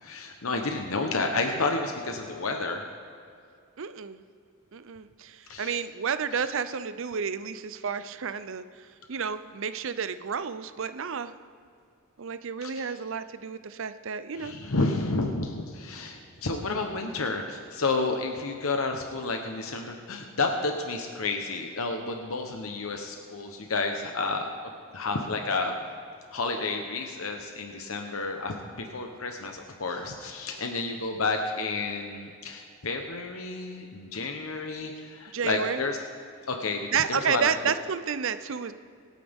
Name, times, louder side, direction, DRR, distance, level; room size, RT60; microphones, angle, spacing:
voice 1, 0.0-2.9 5.5-5.8 6.4-6.5 12.6-12.9 14.3-24.5 24.9-25.7 26.3-36.0 36.5-37.4, left 3 dB, 80° left, 3 dB, 1.0 m, -31 dB
voice 2, 3.8-4.2 4.7-8.6 9.1-11.3 12.2-14.5 35.3-35.8 36.9-38.7, right 6 dB, 65° right, 12 dB, 0.6 m, -31 dB
25.0 x 9.2 x 3.6 m, 2.3 s
head